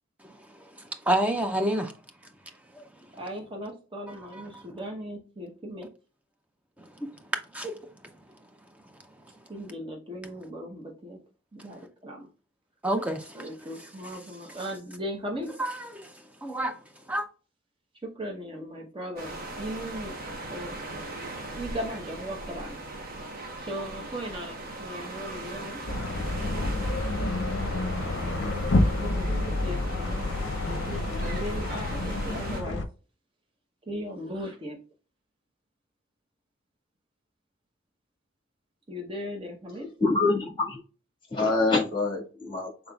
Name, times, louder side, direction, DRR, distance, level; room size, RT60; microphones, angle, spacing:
voice 1, 0.2-1.9 2.7-2.8 4.1-4.6 6.8-7.1 7.5-7.8 12.8-13.5 15.6-16.8 17.1-17.3, right 1 dB, 5° right, 0.5 m, -30 dB
voice 2, 3.2-5.9 9.5-11.2 11.5-12.3 13.3-15.5 18.0-20.2 20.5-20.8 21.6-22.8 23.6-25.8 28.2-28.7 28.9-30.3 30.6-32.8 33.9-34.8 38.9-39.9, equal, 25° right, 0.9 m, -37 dB
sound 1, 19.2-32.6, right 2 dB, 45° right, 1.1 m, -39 dB
sound 2, 25.9-32.8, left 2 dB, 55° left, 0.7 m, -28 dB
voice 3, 40.0-40.8 41.3-42.7, left 3 dB, 20° left, 1.7 m, -25 dB
5.5 x 3.9 x 2.3 m
head